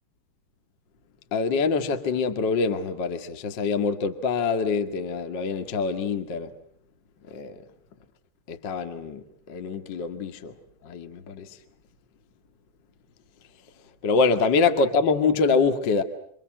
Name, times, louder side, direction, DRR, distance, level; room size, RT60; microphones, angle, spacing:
voice 1, 1.3-6.5 7.3-7.6 8.5-9.2 9.5-10.5 10.8-11.5 14.0-16.0, left 4 dB, 75° left, 1.0 m, -25 dB
29.5 x 25.5 x 7.7 m
omnidirectional pair, 5.4 m